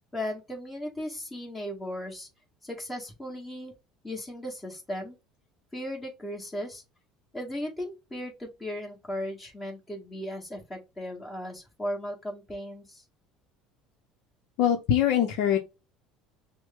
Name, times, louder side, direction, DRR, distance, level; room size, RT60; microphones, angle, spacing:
voice 1, 0.1-2.3 2.6-3.7 4.0-5.2 5.7-6.8 7.3-13.0, left 1 dB, 10° left, 1.8 m, -36 dB
voice 2, 14.6-15.6, left 9 dB, 65° left, 0.8 m, -23 dB
6.1 x 2.2 x 3.6 m
cardioid pair, 145°, 0 cm